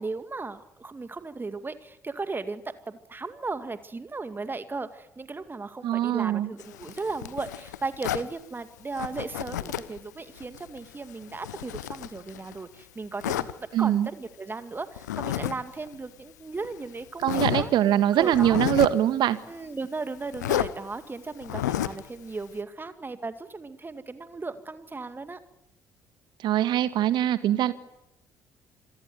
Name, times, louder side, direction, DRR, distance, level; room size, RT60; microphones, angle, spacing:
voice 1, 0.0-17.7 18.1-18.6 19.5-25.4, right 3 dB, 20° right, 11 dB, 2.2 m, -36 dB
voice 2, 5.8-6.5 13.7-14.1 17.2-19.4 26.4-27.7, right 12 dB, 55° right, 13 dB, 1.8 m, -23 dB
Zipper (clothing), 6.6-8.3 8.9-10.0 10.4-12.6 13.2-13.5 15.0-15.5 15.8-15.9 16.6-16.7 17.2-17.7 18.2-19.0 20.3-20.7 21.4-22.0, left 12 dB, 75° left, 1.0 m, -31 dB
27.5 x 22.0 x 9.7 m, 0.84 s
figure-of-eight pair, 50°, 9 cm